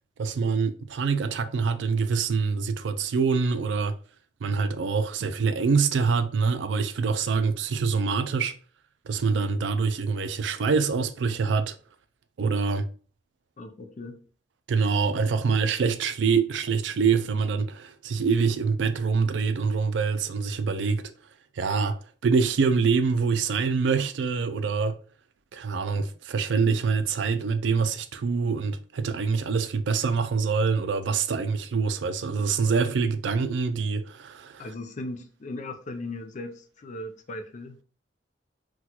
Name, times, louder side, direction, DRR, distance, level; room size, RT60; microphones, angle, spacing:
voice 1, 0.2-3.9 4.4-8.5 9.1-11.7 12.4-12.9 14.7-21.0 21.6-22.0 22.2-24.9 25.5-34.7, right 5 dB, 80° right, 0.4 m, -25 dB
voice 2, 13.6-14.2 34.6-37.8, left 2 dB, 40° left, 0.4 m, -38 dB
4.2 x 2.3 x 2.3 m
head